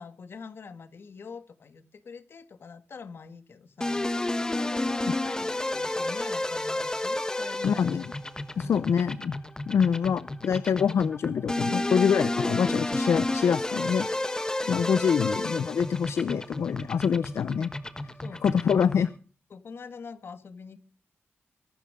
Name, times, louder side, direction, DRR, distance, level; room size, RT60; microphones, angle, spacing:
voice 1, 0.0-4.2 4.5-8.0 8.5-9.0 14.6-15.0 18.2-18.9 19.5-20.8, left 5 dB, 55° left, 10 dB, 1.9 m, -44 dB
sound 1, 3.8-19.2, left 2 dB, 15° left, 1.2 m, -31 dB
voice 2, 7.6-8.0 8.6-9.4 9.7-14.1 14.7-17.7 18.4-19.1, left 7 dB, 75° left, 15 dB, 0.6 m, -25 dB
23.0 x 12.0 x 3.7 m, 0.39 s
wide cardioid pair, 140°, 5 cm